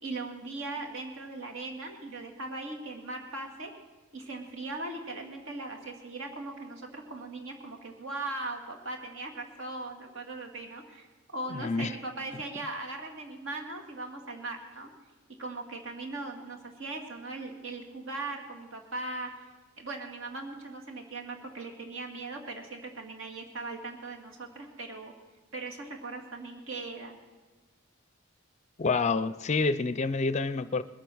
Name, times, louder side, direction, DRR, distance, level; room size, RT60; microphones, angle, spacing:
voice 1, 0.0-3.7 4.1-11.1 11.3-14.9 15.4-19.5 19.8-25.1 25.5-27.2, right 2 dB, 70° right, 2 dB, 2.1 m, -39 dB
voice 2, 11.5-11.9 28.8-30.8, left 4 dB, 35° left, 14 dB, 0.5 m, -28 dB
20.5 x 8.2 x 6.3 m, 1.3 s
head